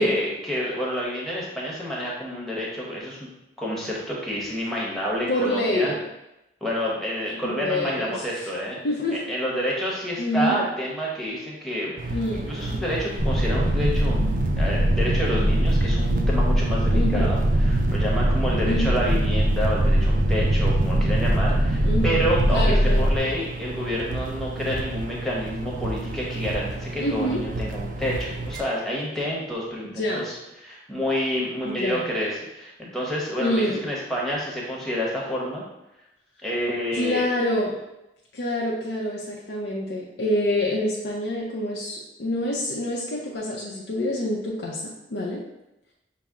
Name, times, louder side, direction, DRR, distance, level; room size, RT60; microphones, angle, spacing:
voice 1, 0.0-3.2 3.6-6.0 6.6-8.8 9.3-12.2 12.5-30.3 30.6-35.6 36.4-37.3, equal, ahead, -5 dB, 0.9 m, -29 dB
voice 2, 5.3-6.0 7.4-8.5 8.8-9.2 10.2-10.6 12.1-12.5 16.9-17.3 18.6-18.9 21.8-22.2 22.5-23.1 27.0-27.4 30.0-30.2 31.6-32.1 33.4-33.8 36.9-37.7 38.3-45.4, left 1 dB, 85° left, -4 dB, 0.6 m, -26 dB
sound 1, 12.0-28.6, right 2 dB, 45° right, 0.3 m, -33 dB
sound 2, 13.2-23.2, right 1 dB, 85° right, 0.7 m, -21 dB
5.5 x 2.0 x 3.6 m, 0.90 s
head